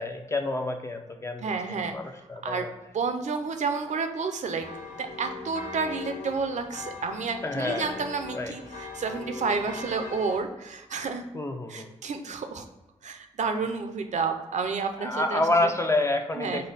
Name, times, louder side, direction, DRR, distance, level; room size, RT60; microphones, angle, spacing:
voice 1, 0.0-2.7 7.4-7.9 8.3-8.5 11.3-11.9 15.0-16.7, left 2 dB, 20° left, 5 dB, 0.5 m, -28 dB
voice 2, 1.4-2.0 2.4-2.7 2.9-4.7 5.0-11.2 11.7-12.6 13.0-15.7 16.4-16.6, right 4 dB, 70° right, 7 dB, 0.6 m, -30 dB
sound 1, 4.6-10.4, left 3 dB, 70° left, 0.8 m, -40 dB
5.2 x 2.2 x 4.0 m, 1.1 s
cardioid pair, 85°, 13 cm